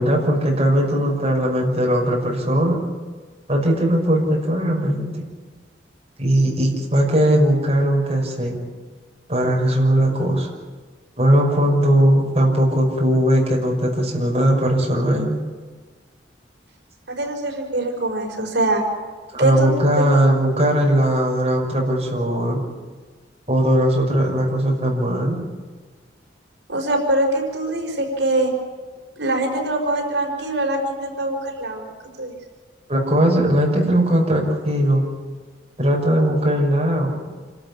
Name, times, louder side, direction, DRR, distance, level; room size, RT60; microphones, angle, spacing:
voice 1, 0.0-2.8 3.5-5.2 6.2-8.6 9.3-10.5 11.2-15.4 19.3-22.6 23.5-25.4 32.9-35.0 35.8-37.1, right 1 dB, 35° right, -1 dB, 5.9 m, -19 dB
voice 2, 17.1-18.9 19.4-19.7 20.0-20.1 26.7-28.5 29.2-31.9 32.2-32.3, right 1 dB, 75° right, 2 dB, 5.2 m, -23 dB
28.0 x 13.5 x 9.9 m, 1.5 s
head